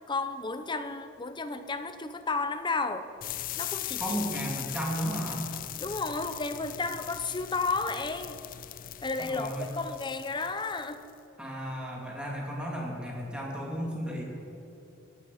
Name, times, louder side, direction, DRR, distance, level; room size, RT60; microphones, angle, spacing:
voice 1, 0.1-3.1 3.6-4.2 5.8-8.4 9.0-11.0, left 3 dB, 25° left, 9 dB, 0.8 m, -32 dB
sound 1, 3.2-11.1, left 13 dB, 45° left, 0.4 m, -39 dB
voice 2, 4.0-5.5 9.2-9.7 11.4-14.2, equal, 5° right, -2 dB, 2.8 m, -34 dB
17.0 x 9.7 x 7.9 m, 2.9 s
head